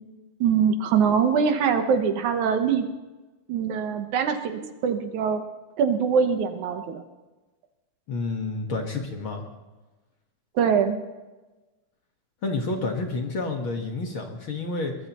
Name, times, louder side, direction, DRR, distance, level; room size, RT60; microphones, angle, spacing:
voice 1, 0.4-2.9 3.5-5.4 5.8-7.0 10.6-11.0, right 6 dB, 70° right, 7 dB, 2.4 m, -23 dB
voice 2, 8.1-9.4 12.4-15.0, left 3 dB, 50° left, 2 dB, 2.0 m, -29 dB
23.0 x 20.5 x 3.0 m, 1.2 s
omnidirectional pair, 3.7 m